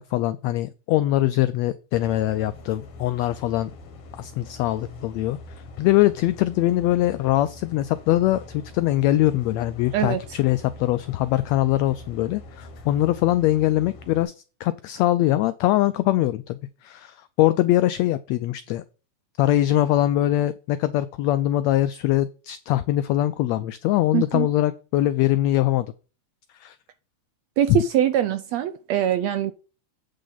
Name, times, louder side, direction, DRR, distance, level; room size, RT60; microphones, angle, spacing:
voice 1, 0.0-3.7 4.2-5.4 5.8-14.3 14.6-18.8 19.4-25.9 26.6-26.7 27.7-27.8, left 14 dB, 90° left, 1.5 m, -22 dB
sound 1, 1.9-14.2, left 2 dB, 55° left, 1.9 m, -43 dB
voice 2, 24.1-24.5 27.6-29.5, right 10 dB, 80° right, 1.6 m, -23 dB
8.5 x 6.5 x 4.0 m
omnidirectional pair, 3.6 m